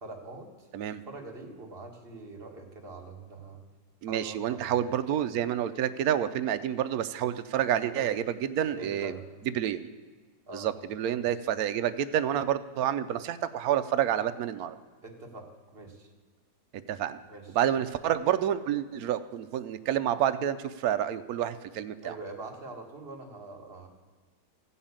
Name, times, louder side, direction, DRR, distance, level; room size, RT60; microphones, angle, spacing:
voice 1, 0.0-0.7 1.1-3.6 4.1-4.9 7.9-8.1 8.7-9.3 10.5-10.7 11.1-11.3 15.0-16.1 17.3-17.8 22.0-23.9, right 2 dB, 35° right, 2 dB, 1.8 m, -44 dB
voice 2, 4.0-9.1 9.5-9.9 10.5-14.8 16.7-17.2 17.5-22.2, right 10 dB, 70° right, 11 dB, 0.9 m, -29 dB
15.0 x 5.6 x 8.7 m, 1.4 s
omnidirectional pair, 2.0 m